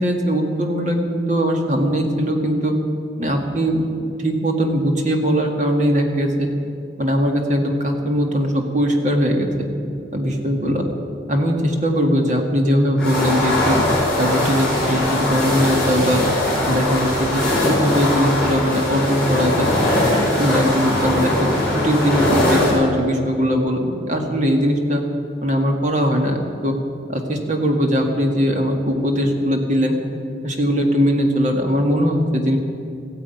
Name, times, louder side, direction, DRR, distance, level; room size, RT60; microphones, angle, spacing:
voice 1, 0.0-2.7 3.2-6.5 7.0-9.7 10.1-10.8 11.3-13.8 14.1-16.2 16.6-19.7 20.1-25.0 25.4-26.4 26.6-26.7 27.1-30.0 30.4-32.6, equal, 40° right, 2 dB, 1.9 m, -20 dB
sound 1, 13.0-22.7, left 1 dB, 5° left, 4.9 m, -20 dB
15.0 x 10.0 x 9.2 m, 2.6 s
head